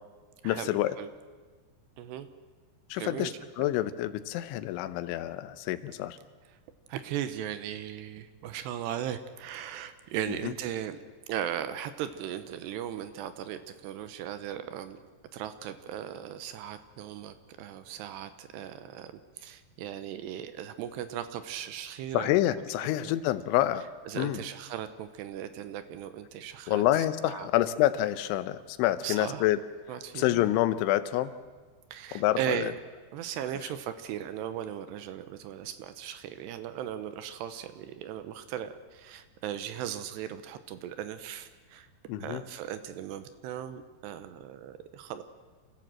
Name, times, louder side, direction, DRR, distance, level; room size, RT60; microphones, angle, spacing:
voice 1, 0.4-1.0 2.9-6.2 10.4-10.5 22.1-23.9 24.2-24.4 26.7-29.6 30.1-31.3 32.1-32.7 42.1-42.4, left 14 dB, 85° left, 13 dB, 3.2 m, -27 dB
voice 2, 2.0-2.3 2.9-3.4 6.9-11.0 11.3-15.0 15.3-22.6 23.0-23.1 24.1-27.5 29.0-29.5 29.9-30.4 31.9-32.8 33.1-41.9 42.2-45.2, right 10 dB, 75° right, 11 dB, 2.8 m, -37 dB
27.5 x 15.5 x 7.6 m, 1.4 s
omnidirectional pair, 5.3 m